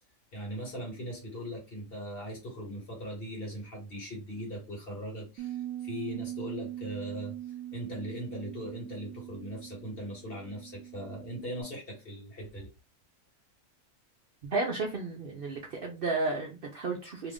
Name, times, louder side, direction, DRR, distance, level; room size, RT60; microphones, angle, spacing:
voice 1, 0.3-7.4 7.7-12.7, equal, 45° left, -1 dB, 1.5 m, -40 dB
Bass guitar, 5.4-11.6, right 13 dB, 75° right, 0.9 m, -41 dB
voice 2, 14.5-17.3, right 3 dB, 55° right, 1 dB, 0.7 m, -32 dB
3.0 x 2.4 x 3.4 m, 0.28 s
omnidirectional pair, 1.4 m